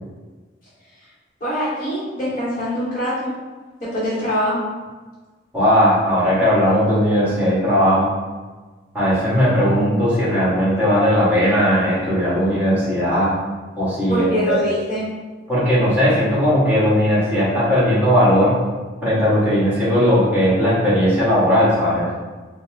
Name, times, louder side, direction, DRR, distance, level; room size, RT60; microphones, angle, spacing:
voice 1, 1.4-3.3 3.8-4.6 14.1-15.1, equal, 40° left, -10 dB, 1.1 m, -23 dB
voice 2, 5.5-8.1 8.9-13.3 13.8-14.6 15.5-18.6 19.0-22.1, equal, 10° right, -10 dB, 1.5 m, -17 dB
4.4 x 2.1 x 3.3 m, 1.3 s
head